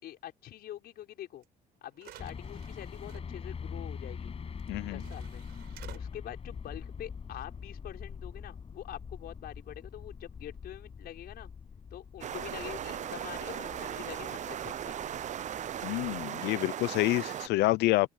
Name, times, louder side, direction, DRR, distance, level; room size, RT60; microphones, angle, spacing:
voice 1, 0.0-1.5 1.8-4.3 4.9-5.4 5.9-11.5 11.9-15.2, left 12 dB, 70° left, 5.4 m, -45 dB
sound 1, 1.4-1.5 1.9-3.2 4.6-4.7 5.0-6.0, right 14 dB, 75° right, 4.7 m, -52 dB
sound 2, 2.2-16.3, left 6 dB, 35° left, 7.9 m, -44 dB
voice 2, 4.7-5.0 15.8-18.1, left 19 dB, 85° left, 0.7 m, -28 dB
sound 3, 12.2-17.5, right 10 dB, 45° right, 0.6 m, -37 dB
cardioid pair, 110°, 17 cm